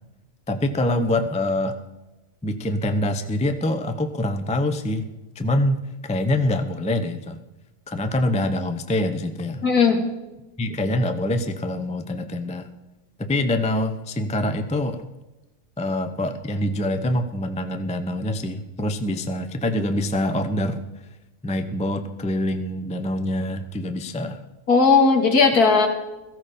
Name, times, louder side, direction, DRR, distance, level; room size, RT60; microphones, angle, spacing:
voice 1, 0.5-1.8 2.4-5.0 5.4-7.4 7.9-9.6 10.6-12.7 13.2-15.0 15.8-20.8 21.4-24.4, left 1 dB, 10° left, 8 dB, 0.3 m, -25 dB
voice 2, 9.6-10.1 24.7-25.9, left 4 dB, 70° left, 3 dB, 2.4 m, -16 dB
17.0 x 15.0 x 4.2 m, 1.0 s
omnidirectional pair, 1.7 m